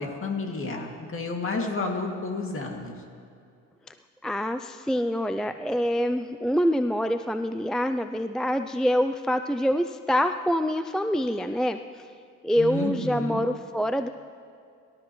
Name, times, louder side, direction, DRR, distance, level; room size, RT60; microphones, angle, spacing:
voice 1, 0.0-2.9 12.6-13.4, left 3 dB, 45° left, 1 dB, 2.4 m, -31 dB
voice 2, 4.2-12.1 12.4-14.1, equal, ahead, 8 dB, 0.4 m, -26 dB
24.0 x 13.0 x 3.2 m, 2.4 s
cardioid pair, 90°, 30 cm